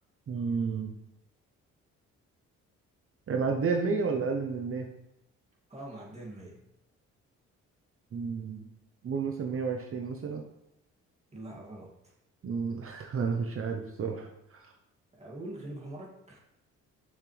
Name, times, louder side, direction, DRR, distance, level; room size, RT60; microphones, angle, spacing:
voice 1, 0.3-0.9 3.3-4.9 8.1-8.7 9.0-10.4 12.4-14.7, right 5 dB, 45° right, 3 dB, 0.9 m, -31 dB
voice 2, 5.7-6.6 11.3-12.1 15.1-16.4, right 1 dB, 20° right, -3 dB, 2.5 m, -43 dB
6.8 x 6.5 x 3.4 m, 0.87 s
cardioid pair, 90°, 30 cm